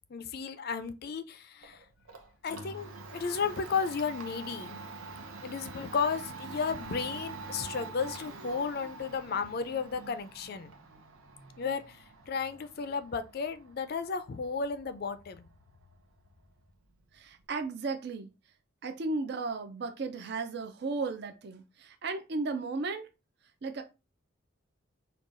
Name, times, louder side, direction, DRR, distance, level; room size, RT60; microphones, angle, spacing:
voice 1, 0.1-1.8 2.4-4.8 5.4-10.7 11.6-15.5, left 5 dB, 50° left, 0.4 m, -34 dB
Domestic sounds home sounds, 1.6-17.5, right 3 dB, 85° right, 0.7 m, -46 dB
voice 2, 17.1-18.3 18.8-23.1 23.6-23.8, right 3 dB, 50° right, 0.4 m, -35 dB
5.3 x 2.3 x 2.5 m
head